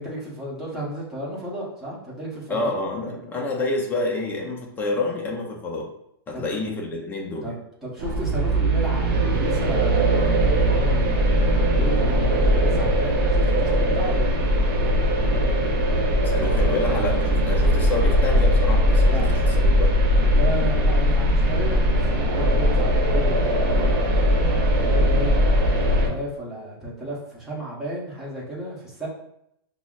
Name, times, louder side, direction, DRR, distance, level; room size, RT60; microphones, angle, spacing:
voice 1, 0.0-2.7 6.3-6.6 7.4-14.3 19.1-19.3 20.2-24.2 24.8-29.1, right 1 dB, 5° right, -7 dB, 0.9 m, -33 dB
voice 2, 2.5-5.9 6.3-7.5 16.2-19.9, left 2 dB, 15° left, 0 dB, 0.5 m, -28 dB
sound 1, 8.0-26.1, equal, 45° right, 0.9 m, -20 dB
5.4 x 2.0 x 2.3 m, 0.75 s
hypercardioid pair, 155°, 13 cm